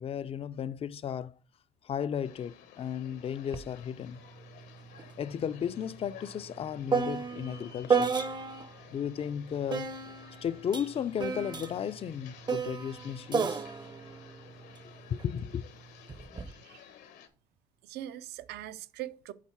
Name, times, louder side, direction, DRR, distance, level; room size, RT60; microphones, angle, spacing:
voice 1, 0.0-1.3 1.8-4.2 5.2-8.2 8.9-9.9 10.4-13.7 15.1-15.6, left 8 dB, 35° left, 0.4 m, -34 dB
sound 1, 2.2-17.3, left 9 dB, 80° left, 1.2 m, -54 dB
sound 2, 3.5-3.7 4.0-8.8 9.7-15.2 16.1-16.5, right 5 dB, 25° right, 0.6 m, -33 dB
voice 2, 16.5-16.8 17.8-19.3, right 13 dB, 75° right, 0.6 m, -42 dB
7.3 x 3.8 x 5.7 m
cardioid pair, 110°, 17 cm